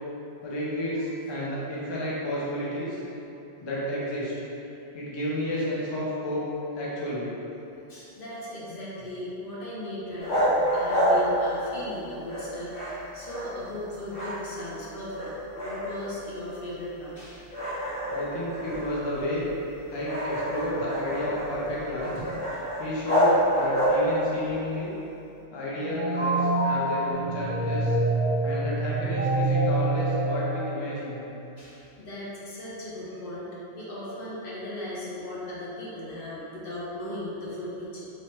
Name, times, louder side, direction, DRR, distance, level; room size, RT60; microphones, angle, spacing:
voice 1, 0.4-3.0 3.6-4.3 4.9-6.4 6.7-7.3 18.1-19.5 19.9-22.2 22.8-24.9 25.5-28.0 28.4-31.2, equal, 30° left, -7 dB, 0.6 m, -31 dB
voice 2, 7.9-15.3 15.5-17.5 31.6-38.1, left 1 dB, 60° left, -8 dB, 1.0 m, -37 dB
sound 1, 10.2-12.0 12.3-13.8 14.1-14.8 15.1-16.3 16.8-16.9 17.5-24.4, equal, 85° left, 1.5 m, -28 dB
sound 2, 25.7-31.2, right 2 dB, 15° right, 0.4 m, -26 dB
3.1 x 2.9 x 4.4 m, 3.0 s
omnidirectional pair, 1.1 m